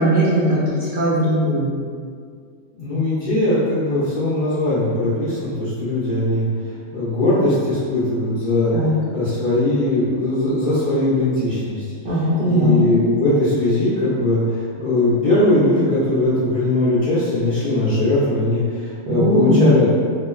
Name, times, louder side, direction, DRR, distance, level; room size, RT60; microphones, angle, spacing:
voice 1, 0.0-1.7 8.7-8.9 12.0-12.7 19.1-19.6, equal, 65° right, -10 dB, 0.5 m, -18 dB
voice 2, 2.7-6.4 6.9-8.7 9.1-11.8 12.1-20.0, left 1 dB, 55° left, -12 dB, 0.5 m, -20 dB
2.8 x 2.0 x 2.3 m, 2.1 s
omnidirectional pair, 1.4 m